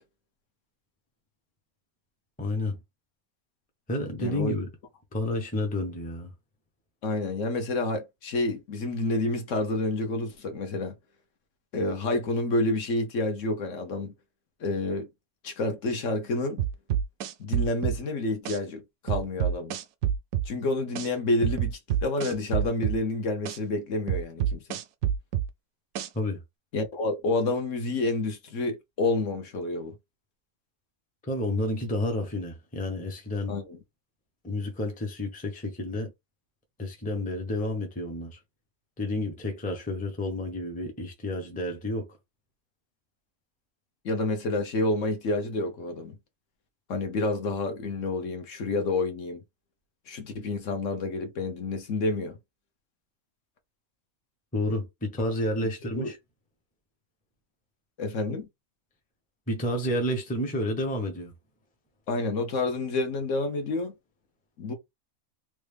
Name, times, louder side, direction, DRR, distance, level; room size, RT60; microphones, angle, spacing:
voice 1, 2.4-2.8 3.9-4.7 5.1-6.3 26.1-26.4 31.2-33.5 34.4-36.1 36.8-38.4 39.0-42.1 54.5-56.2 59.5-61.3, left 1 dB, 10° left, 0.6 m, -30 dB
voice 2, 4.2-4.6 7.0-10.9 11.7-14.1 14.6-15.1 15.4-16.6 17.4-19.8 20.5-24.8 26.7-29.9 33.5-33.8 44.0-46.2 46.9-49.4 50.1-52.4 55.9-56.1 58.0-58.5 62.1-63.9 64.6-64.7, left 2 dB, 65° left, 1.2 m, -29 dB
sound 1, 16.6-18.0 18.5-18.6 19.1-20.5 21.0-21.1 21.4-23.0 23.5-23.6 24.1-25.5 26.0-26.1, right 10 dB, 80° right, 1.0 m, -27 dB
3.2 x 2.4 x 3.4 m
omnidirectional pair, 1.5 m